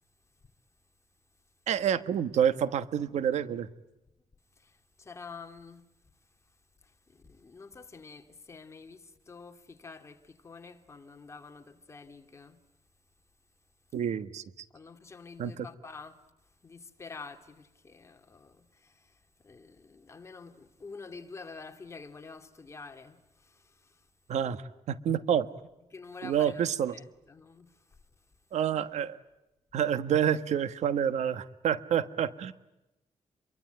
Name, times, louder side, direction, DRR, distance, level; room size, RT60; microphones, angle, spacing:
voice 1, 1.7-3.7 13.9-14.4 15.4-15.6 24.3-24.6 24.9-25.5 26.2-26.9 28.5-29.2 29.7-32.5, right 9 dB, 80° right, 1.4 m, -28 dB
voice 2, 4.6-5.8 6.8-12.6 14.7-16.3 16.6-24.1 25.9-28.0, left 4 dB, 25° left, 2.4 m, -48 dB
28.0 x 23.5 x 9.0 m
wide cardioid pair, 160°, 11 cm